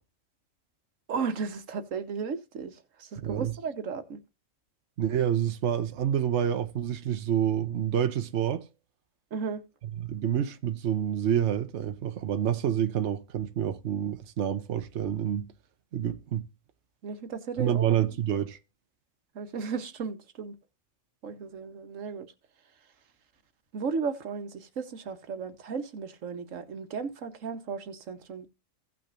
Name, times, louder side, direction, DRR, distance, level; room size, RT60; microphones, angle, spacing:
voice 1, 1.1-4.2 9.3-9.6 17.0-17.9 19.3-20.5 21.2-22.3 23.7-28.5, right 5 dB, 85° right, 1.4 m, -35 dB
voice 2, 3.2-3.5 5.0-8.7 10.0-15.5 15.9-16.4 17.6-18.6, right 9 dB, 65° right, 1.1 m, -28 dB
16.5 x 6.0 x 2.5 m
omnidirectional pair, 1.3 m